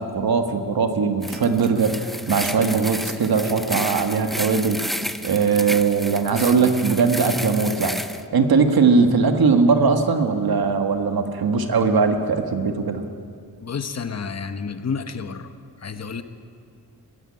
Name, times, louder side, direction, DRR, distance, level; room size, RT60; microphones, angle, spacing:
voice 1, 0.0-4.8 5.2-8.0 8.3-13.0, right 5 dB, 80° right, 6 dB, 1.7 m, -20 dB
sound 1, 1.2-8.2, equal, ahead, 0.6 m, -31 dB
voice 2, 13.6-15.5 15.8-16.2, left 5 dB, 45° left, 9 dB, 1.0 m, -30 dB
23.0 x 15.0 x 8.7 m, 2.3 s
wide cardioid pair, 175°, 36 cm